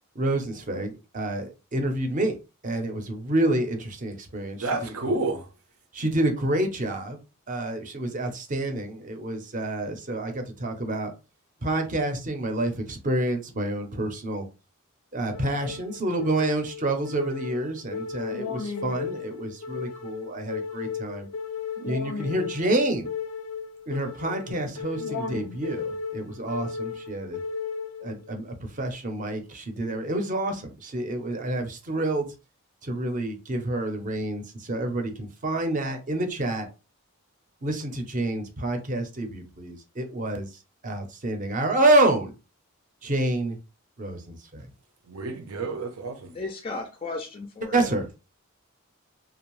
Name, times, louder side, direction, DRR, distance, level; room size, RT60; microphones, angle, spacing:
voice 1, 0.2-2.4 2.6-4.7 5.1-5.2 5.9-7.2 7.5-11.1 11.6-14.4 15.1-21.3 21.9-23.1 23.9-27.4 28.0-30.5 30.9-32.3 32.8-36.7 37.6-40.5 40.8-42.3 43.0-43.6 44.0-44.7 47.7-48.1, right 1 dB, 35° right, 0.6 m, -28 dB
voice 2, 4.6-5.5 45.1-46.3, right 2 dB, 85° right, 0.7 m, -30 dB
sound 1, 15.3-28.3, left 5 dB, 85° left, 0.5 m, -35 dB
voice 3, 46.3-47.9, left 3 dB, 25° left, 0.3 m, -35 dB
2.6 x 2.0 x 3.0 m
head